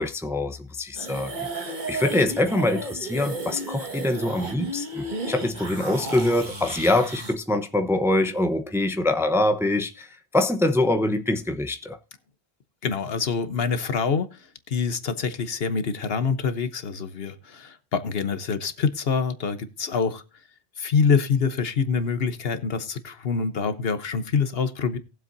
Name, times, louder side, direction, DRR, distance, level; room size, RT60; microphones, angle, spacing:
voice 1, 0.0-1.5 1.9-10.1 10.3-12.0, left 1 dB, 5° right, 0.8 m, -24 dB
sound 1, 0.9-7.3, right 2 dB, 45° right, 1.9 m, -33 dB
voice 2, 12.8-20.2 20.8-25.0, left 5 dB, 65° left, 1.2 m, -26 dB
18.5 x 7.5 x 2.6 m
omnidirectional pair, 1.1 m